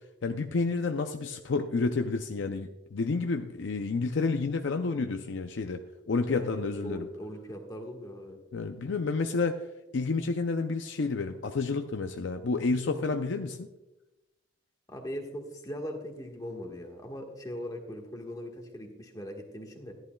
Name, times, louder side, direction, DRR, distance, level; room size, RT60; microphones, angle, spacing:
voice 1, 0.2-7.1 8.5-9.6 9.9-13.7, left 4 dB, 65° left, 6 dB, 0.5 m, -30 dB
voice 2, 6.3-8.4 14.9-19.9, equal, 20° left, 2 dB, 1.4 m, -40 dB
14.5 x 11.0 x 2.3 m, 1.0 s
head